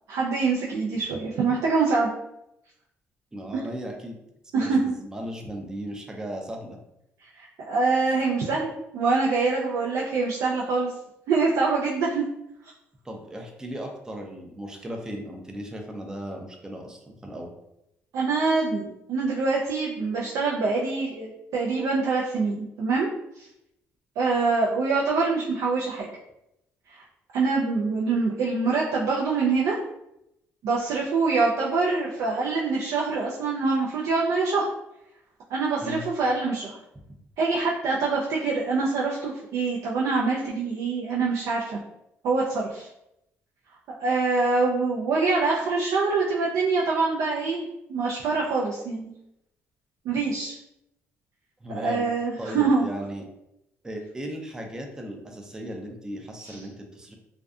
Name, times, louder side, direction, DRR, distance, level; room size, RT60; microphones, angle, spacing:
voice 1, 0.1-2.1 4.5-4.9 7.4-10.9 11.3-12.3 18.1-23.1 23.4-23.5 24.2-26.1 26.9-27.0 27.3-29.8 30.6-34.7 35.5-36.8 37.4-41.8 42.2-42.9 43.9-49.1 50.1-50.6 51.8-52.9 56.4-56.6, right 4 dB, 80° right, -3 dB, 0.4 m, -25 dB
voice 2, 3.3-4.2 4.6-6.8 13.0-17.5 35.8-36.0 51.6-52.1 52.4-53.3 53.8-57.2, equal, 15° right, 2 dB, 0.4 m, -36 dB
2.5 x 2.2 x 2.3 m, 0.84 s
cardioid pair, 100°, 5 cm